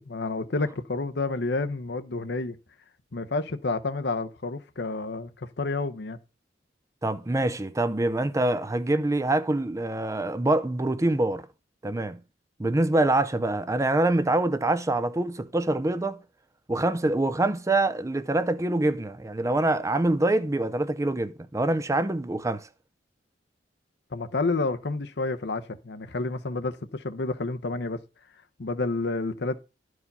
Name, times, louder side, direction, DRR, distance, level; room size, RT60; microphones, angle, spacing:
voice 1, 0.0-2.6 3.1-6.2 24.1-28.0 28.6-29.6, left 3 dB, 70° left, 0.8 m, -29 dB
voice 2, 7.0-11.5 11.8-12.2 12.6-16.2 16.7-22.7, right 2 dB, 20° right, 0.5 m, -25 dB
11.5 x 4.8 x 5.4 m
head